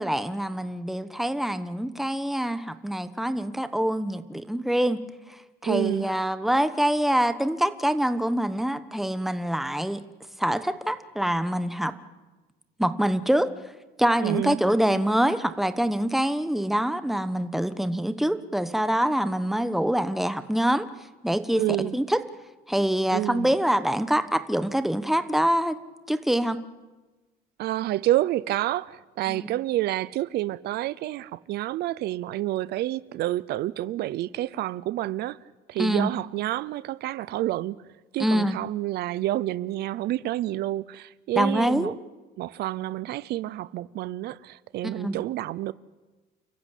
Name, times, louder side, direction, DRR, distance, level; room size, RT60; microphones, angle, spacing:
voice 1, 0.0-5.0 5.3-10.0 10.4-11.9 12.8-13.5 14.0-20.9 21.2-22.2 22.7-25.8 26.1-26.6 29.3-29.5 35.8-36.1 38.2-38.6 41.3-41.9 44.8-45.2, right 1 dB, ahead, 1.2 m, -25 dB
voice 2, 5.6-6.1 14.2-14.6 21.6-22.0 23.1-23.5 27.6-35.4 35.7-41.9 42.4-45.7, right 15 dB, 75° right, 0.6 m, -29 dB
29.5 x 15.0 x 8.4 m
cardioid pair, 110°, 17 cm